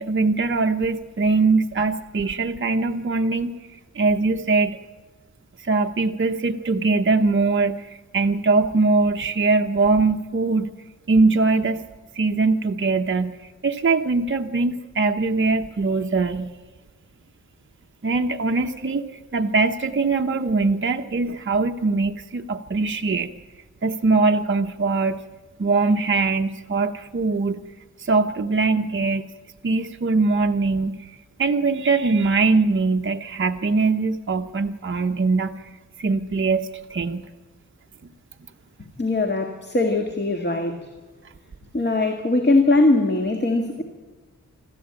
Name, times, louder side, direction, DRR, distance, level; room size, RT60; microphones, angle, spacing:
voice 1, 0.0-3.5 3.9-4.8 5.6-10.7 11.1-11.8 12.1-16.5 18.0-23.3 23.8-25.2 25.6-27.6 28.0-29.3 29.6-35.5 36.0-37.2, right 3 dB, 40° right, 4 dB, 0.9 m, -22 dB
voice 2, 39.0-40.8 41.7-43.8, left 2 dB, 35° left, 4 dB, 1.8 m, -20 dB
26.5 x 13.5 x 8.9 m, 1.3 s
wide cardioid pair, 140°, 32 cm